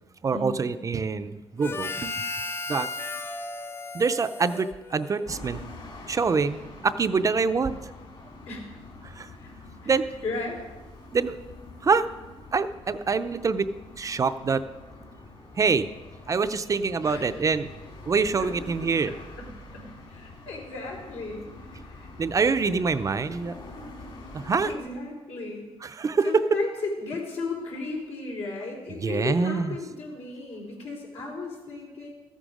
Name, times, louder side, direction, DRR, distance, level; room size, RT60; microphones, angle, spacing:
voice 1, 0.2-2.3 2.7-2.9 3.9-5.6 6.1-7.8 9.0-9.3 9.9-10.1 11.1-11.4 11.8-12.1 12.5-13.7 14.0-14.6 15.6-15.9 16.3-17.7 18.1-19.1 22.2-23.5 24.3-24.7 25.8-26.4 29.0-29.7, right 5 dB, 30° right, 10 dB, 0.5 m, -25 dB
Harmonica, 1.6-5.4, left 3 dB, 20° left, 0.5 m, -35 dB
sound 1, 5.3-24.8, left 2 dB, 55° left, 3.3 m, -45 dB
voice 2, 9.8-10.6 17.0-17.3 18.4-18.5 19.0-19.5 19.7-22.1 24.6-25.7 26.2-32.1, left 3 dB, 80° left, -1 dB, 3.7 m, -35 dB
14.0 x 9.1 x 5.0 m, 1.2 s
cardioid pair, 120°, 11 cm